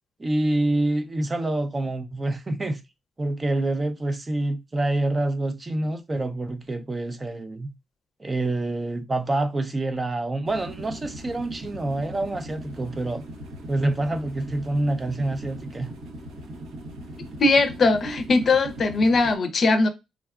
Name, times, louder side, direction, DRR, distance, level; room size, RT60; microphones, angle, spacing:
voice 1, 0.2-2.8 3.2-7.7 8.2-13.2 13.7-15.9, right 2 dB, 25° right, 0.4 m, -26 dB
sound 1, 10.4-19.3, right 1 dB, 90° right, 0.8 m, -39 dB
voice 2, 17.4-19.9, left 3 dB, 45° left, 0.5 m, -20 dB
3.5 x 2.3 x 2.3 m
cardioid pair, 90°, 0 cm